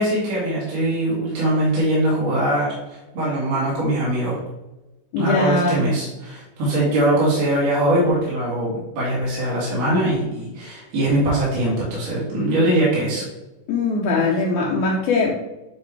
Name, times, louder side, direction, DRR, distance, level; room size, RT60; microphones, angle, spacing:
voice 1, 0.0-4.4 5.2-13.2, right 1 dB, 55° right, -7 dB, 2.9 m, -21 dB
voice 2, 5.1-5.8 13.7-15.3, left 3 dB, 75° left, -4 dB, 2.2 m, -21 dB
9.4 x 3.2 x 3.3 m, 1.0 s
omnidirectional pair, 3.7 m